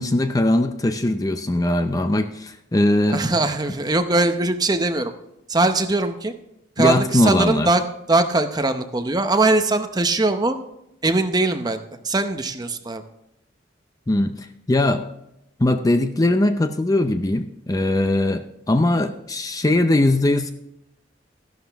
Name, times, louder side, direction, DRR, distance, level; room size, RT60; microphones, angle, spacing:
voice 1, 0.0-3.2 6.8-7.7 14.1-15.0 15.6-20.5, left 1 dB, 20° left, 8 dB, 0.5 m, -20 dB
voice 2, 3.1-5.1 5.5-6.3 6.8-7.8 8.1-10.6 11.0-13.0, right 2 dB, 20° right, 7 dB, 0.8 m, -21 dB
13.0 x 11.5 x 3.5 m, 0.82 s
head